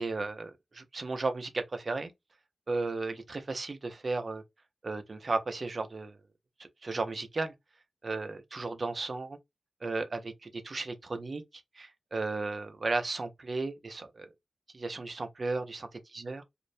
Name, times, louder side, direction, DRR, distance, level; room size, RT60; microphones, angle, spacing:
voice 1, 0.0-2.1 2.7-4.4 4.8-6.2 6.6-7.5 8.0-9.4 9.8-11.4 11.8-14.3 14.7-15.9 16.1-16.4, right 3 dB, 45° right, 0.4 m, -34 dB
2.4 x 2.0 x 2.6 m
wide cardioid pair, 115°, 0 cm